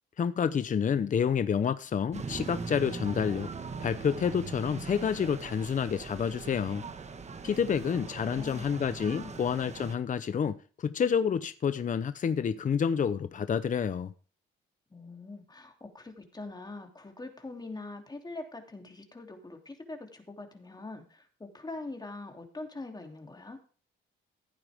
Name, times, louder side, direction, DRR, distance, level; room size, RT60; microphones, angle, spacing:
voice 1, 0.2-3.5 3.8-6.8 7.4-14.1, left 7 dB, 40° left, 0.8 m, -29 dB
sound 1, 2.1-10.0, right 4 dB, 35° right, 1.4 m, -41 dB
voice 2, 7.8-9.4 14.9-23.6, left 2 dB, 20° left, 2.9 m, -43 dB
15.5 x 9.0 x 3.6 m
cardioid pair, 90°, 20 cm